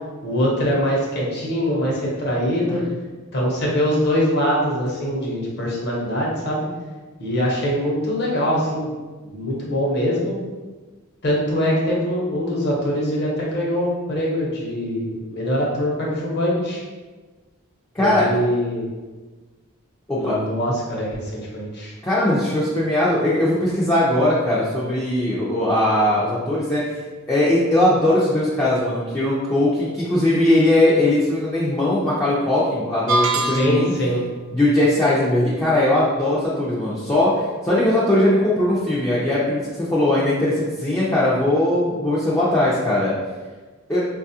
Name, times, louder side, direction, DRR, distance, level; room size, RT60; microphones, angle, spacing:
voice 1, 0.2-2.8 3.3-6.7 7.2-8.9 9.2-10.3 11.2-16.8 18.0-18.9 20.1-21.9 33.5-34.2, equal, 50° left, -4 dB, 0.9 m, -23 dB
voice 2, 17.9-18.3 20.1-20.4 22.0-27.0 27.3-33.9 34.5-43.1 43.9-44.1, left 1 dB, 10° left, -8 dB, 0.4 m, -19 dB
sound 1, 33.1-34.1, right 2 dB, 60° right, 0.4 m, -22 dB
4.0 x 2.4 x 2.7 m, 1.3 s
head